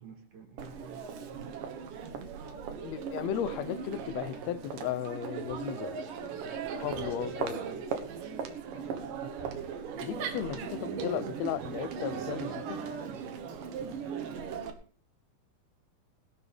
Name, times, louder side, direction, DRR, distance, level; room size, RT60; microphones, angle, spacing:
voice 1, 0.0-2.2 3.1-3.3 8.1-8.3 8.7-9.0 10.1-10.7 13.0-14.6, right 5 dB, 65° right, 3.9 m, -53 dB
Crowd, 0.6-14.7, right 6 dB, 90° right, 3.0 m, -38 dB
voice 2, 2.8-6.0 6.8-7.6 10.0-12.8, left 10 dB, 70° left, 1.8 m, -35 dB
sound 1, 2.9-3.6 4.1-8.9, left 1 dB, 20° left, 2.5 m, -54 dB
19.5 x 12.0 x 3.5 m
omnidirectional pair, 3.7 m